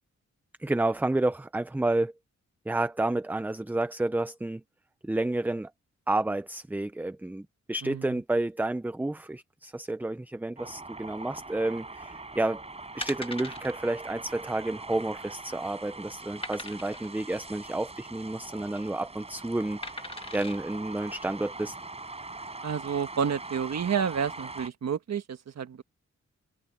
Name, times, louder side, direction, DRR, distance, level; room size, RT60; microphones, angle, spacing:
voice 1, 0.6-2.1 2.7-4.6 5.0-5.7 6.1-12.6 12.9-20.0 20.3-21.8, right 2 dB, 5° right, 0.4 m, -30 dB
sound 1, 10.6-24.7, right 3 dB, 20° right, 4.2 m, -42 dB
sound 2, 12.3-12.5 13.0-13.7 14.1-14.2 14.5-14.6 15.2-15.6 16.4-17.1 18.4-18.8 19.8-20.6 21.2-21.3, left 2 dB, 20° left, 1.5 m, -40 dB
voice 2, 22.6-25.8, right 7 dB, 65° right, 1.4 m, -30 dB
wide cardioid pair, 170°, 29 cm